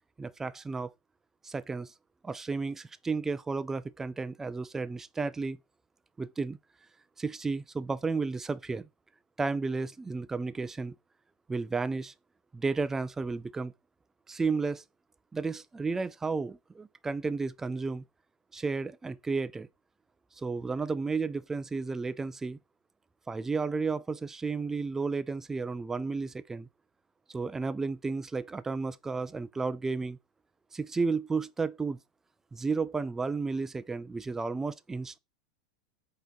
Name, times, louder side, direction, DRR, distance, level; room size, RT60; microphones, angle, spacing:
voice 1, 0.2-0.9 1.4-1.9 2.2-5.6 6.2-6.6 7.2-8.9 9.4-10.9 11.5-12.1 12.5-13.7 14.3-14.8 15.3-18.0 18.5-19.7 20.4-22.6 23.3-26.7 27.3-30.2 30.7-32.0 32.5-35.2, right 4 dB, 10° right, 0.3 m, -32 dB
4.1 x 3.0 x 4.0 m
hypercardioid pair, 105°, 3 cm